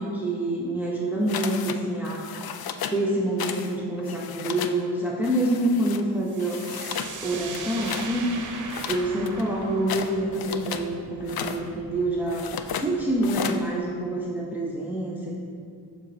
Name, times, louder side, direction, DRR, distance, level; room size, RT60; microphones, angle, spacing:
voice 1, 0.0-2.3 2.9-6.7 7.2-8.4 8.9-12.5 12.7-15.4, right 1 dB, 5° right, -3 dB, 0.7 m, -27 dB
sound 1, 1.3-1.8 2.0-3.0 3.4-3.7 4.0-4.8 5.2-6.0 6.4-7.1 7.5-8.1 8.7-10.9 11.2-11.6 12.3-12.9 13.2-13.6, left 8 dB, 60° left, 0.5 m, -34 dB
sound 2, 6.2-13.8, right 4 dB, 50° right, 0.7 m, -40 dB
7.3 x 6.0 x 2.7 m, 2.4 s
cardioid pair, 85°, 41 cm